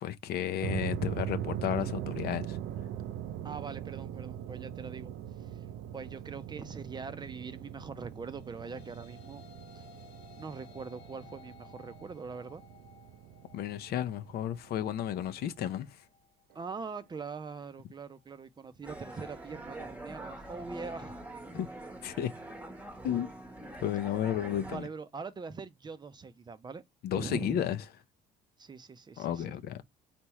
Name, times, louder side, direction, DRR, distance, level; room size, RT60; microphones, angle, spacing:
voice 1, 0.0-2.6 13.5-16.0 21.5-21.7 22.0-22.3 23.0-23.3 23.8-24.9 27.0-27.8 29.2-29.8, left 10 dB, 65° left, 0.6 m, -33 dB
sound 1, 0.6-15.8, right 10 dB, 75° right, 0.4 m, -41 dB
voice 2, 3.4-5.1 5.4-5.6 5.9-9.4 9.8-9.9 10.4-12.6 16.5-21.2 24.7-26.8 27.1-27.6 28.6-29.6, right 5 dB, 25° right, 0.5 m, -42 dB
sound 2, 8.1-17.3, left 7 dB, 90° left, 1.5 m, -57 dB
sound 3, 18.8-24.8, right 1 dB, 10° right, 1.0 m, -44 dB
4.3 x 3.4 x 3.0 m
cardioid pair, 110°, 17 cm